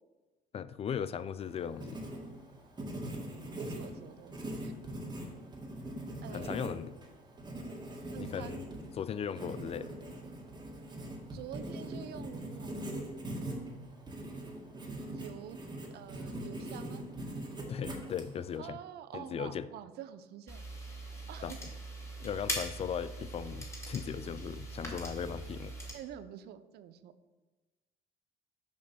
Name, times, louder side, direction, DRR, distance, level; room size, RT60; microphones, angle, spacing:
voice 1, 0.5-2.0 6.3-6.9 8.2-8.6 8.9-9.9 17.7-18.8 19.1-19.7 21.4-21.5 22.2-25.7, left 8 dB, 35° left, 15 dB, 0.3 m, -37 dB
Writing, 1.4-18.6, right 1 dB, 25° right, 1.9 m, -42 dB
voice 2, 3.5-4.7 6.2-6.7 8.1-8.6 11.3-12.9 14.8-15.6 15.9-17.1 18.6-20.7 21.3-21.6 22.2-22.3 25.9-27.1, right 10 dB, 70° right, 12 dB, 0.6 m, -47 dB
sound 1, 20.5-25.9, right 1 dB, 15° left, 2.1 m, -41 dB
6.9 x 5.1 x 6.2 m, 1.2 s
cardioid pair, 110°, 17 cm